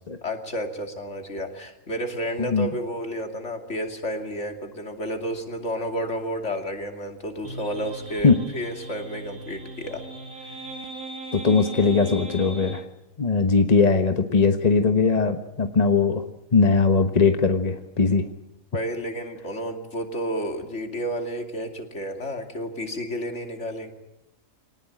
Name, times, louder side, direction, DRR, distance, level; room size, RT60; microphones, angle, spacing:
voice 1, 0.2-10.0 18.7-23.9, equal, 55° left, 5 dB, 3.0 m, -31 dB
sound 1, 7.4-12.9, right 2 dB, 90° right, 2.5 m, -39 dB
voice 2, 11.3-12.8 13.2-16.2 16.5-18.3, left 4 dB, 30° left, 7 dB, 1.2 m, -20 dB
24.0 x 19.0 x 9.0 m, 0.86 s
omnidirectional pair, 1.4 m